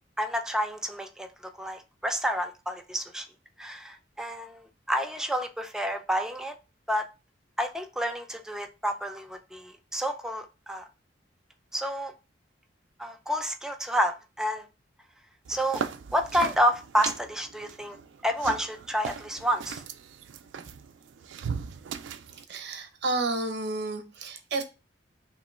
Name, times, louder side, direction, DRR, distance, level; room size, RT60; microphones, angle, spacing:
voice 1, 0.2-3.3 3.6-6.6 6.9-7.1 7.6-10.9 11.7-12.1 13.0-14.7 15.5-15.8 16.1-18.0 18.2-19.8, equal, 5° right, 0.5 m, -29 dB
sound 1, 15.4-22.4, right 6 dB, 85° right, 0.4 m, -38 dB
voice 2, 22.5-24.6, right 2 dB, 65° right, 0.8 m, -31 dB
3.0 x 3.0 x 4.2 m
head